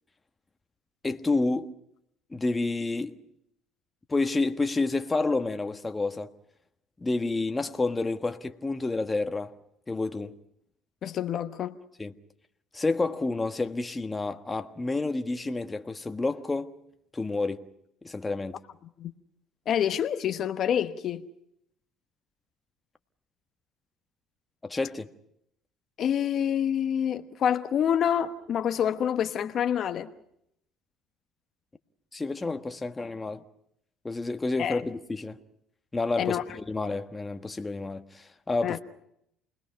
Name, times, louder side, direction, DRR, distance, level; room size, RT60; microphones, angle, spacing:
voice 1, 1.0-1.7 2.3-3.2 4.1-6.3 7.0-9.5 9.9-10.3 12.0-12.1 12.7-16.7 17.1-17.6 18.0-18.6 24.6-25.1 32.1-33.4 34.0-35.4 35.9-38.8, left 3 dB, 20° left, 1.4 m, -29 dB
voice 2, 11.0-11.7 19.0-19.1 19.7-21.3 26.0-30.1 34.6-34.8 36.2-36.4 38.6-38.8, left 9 dB, 55° left, 1.1 m, -27 dB
29.0 x 20.5 x 5.8 m
supercardioid pair, 85°, 0 cm